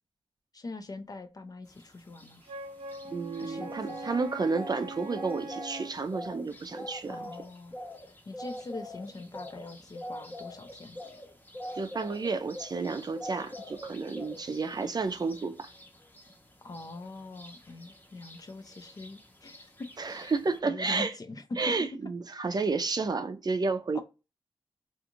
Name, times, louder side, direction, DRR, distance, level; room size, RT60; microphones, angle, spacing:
voice 1, 0.5-2.4 3.4-4.0 7.1-7.7 8.3-11.0 16.6-19.9 20.1-20.4 20.6-21.6 23.9-24.0, left 3 dB, 40° left, 0.5 m, -43 dB
sound 1, 1.7-20.6, left 1 dB, 20° left, 0.8 m, -45 dB
Wind instrument woodwind instrument, 2.4-6.0, right 2 dB, 85° right, 0.6 m, -42 dB
voice 2, 3.1-7.3 11.7-15.7 20.0-21.1 21.6-24.0, right 4 dB, 45° right, 0.5 m, -31 dB
2.5 x 2.4 x 2.9 m
cardioid pair, 70°, 10 cm